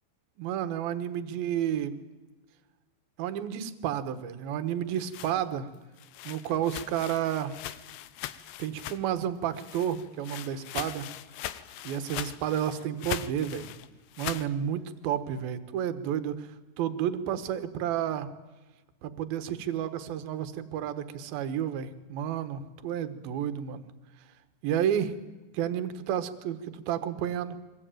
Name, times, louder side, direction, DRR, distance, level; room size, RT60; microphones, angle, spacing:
voice 1, 0.4-2.0 3.2-5.7 6.2-7.6 8.6-11.1 11.8-13.7 14.2-18.3 19.0-23.9 24.6-25.2 25.5-27.6, right 9 dB, 65° right, 10 dB, 2.8 m, -31 dB
sound 1, 4.7-9.2 9.5-14.5, left 13 dB, 80° left, 3.1 m, -40 dB
23.5 x 20.5 x 9.1 m, 1.2 s
omnidirectional pair, 5.1 m